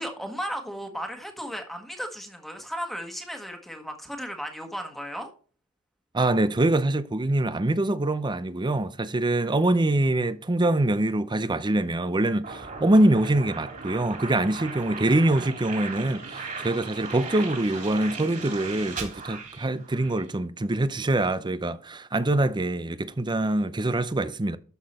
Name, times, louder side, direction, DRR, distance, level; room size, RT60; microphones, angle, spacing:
voice 1, 0.0-5.3, equal, ahead, 1.5 m, -35 dB
voice 2, 6.1-24.6, right 1 dB, 20° right, 0.6 m, -24 dB
sound 1, 12.4-20.2, right 4 dB, 40° right, 3.4 m, -37 dB
12.5 x 6.1 x 4.3 m
head